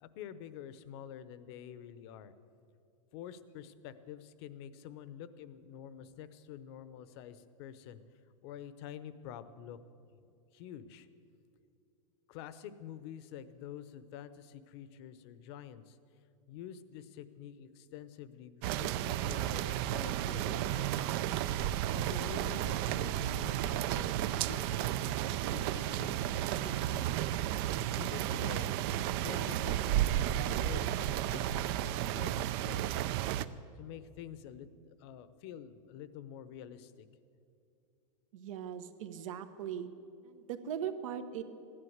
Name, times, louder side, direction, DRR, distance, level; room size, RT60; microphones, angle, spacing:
voice 1, 0.0-2.3 3.1-8.0 8.4-9.8 10.2-11.1 12.3-16.0 16.5-20.9 21.9-27.1 27.9-28.7 29.2-33.3 33.8-37.1, left 9 dB, 50° left, 14 dB, 0.8 m, -48 dB
sound 1, 18.6-33.5, right 12 dB, 45° right, 0.5 m, -33 dB
voice 2, 38.3-39.9 40.2-41.4, right 9 dB, 75° right, 10 dB, 1.2 m, -39 dB
16.0 x 11.0 x 8.0 m, 2.6 s
supercardioid pair, 155°, 17 cm